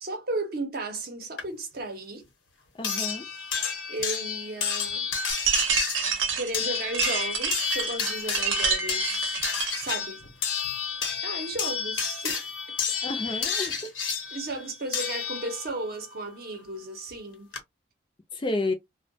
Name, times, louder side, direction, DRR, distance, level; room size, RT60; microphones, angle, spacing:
voice 1, 0.0-2.3 3.2-3.5 3.9-5.1 6.3-9.4 9.7-10.2 11.2-12.5 13.3-13.5 14.3-17.5, right 2 dB, 50° right, 0.7 m, -35 dB
sound 1, 1.4-1.5 2.8-15.8 17.1-17.2 17.5-17.6, left 6 dB, 90° left, 0.8 m, -31 dB
voice 2, 2.7-3.3 13.0-13.9 18.3-18.7, left 2 dB, 25° left, 0.4 m, -30 dB
sound 2, 5.3-9.9, right 5 dB, 90° right, 0.7 m, -28 dB
2.2 x 2.1 x 2.6 m
head